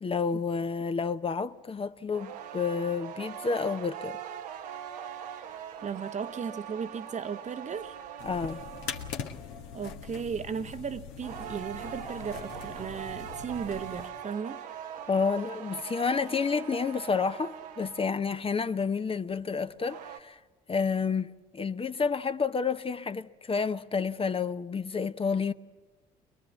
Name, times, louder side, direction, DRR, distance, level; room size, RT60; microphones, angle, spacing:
voice 1, 0.0-4.2 8.2-8.6 15.1-20.4 20.7-25.5, left 5 dB, 30° left, 0.8 m, -30 dB
sound 1, 2.1-9.3 11.2-18.3 19.6-20.2, right 9 dB, 85° right, 1.1 m, -42 dB
voice 2, 5.8-7.9 9.7-14.6, right 6 dB, 35° right, 1.0 m, -36 dB
sound 2, 8.2-14.1, left 7 dB, 70° left, 1.5 m, -42 dB
22.0 x 22.0 x 8.2 m
hypercardioid pair, 55°, 20 cm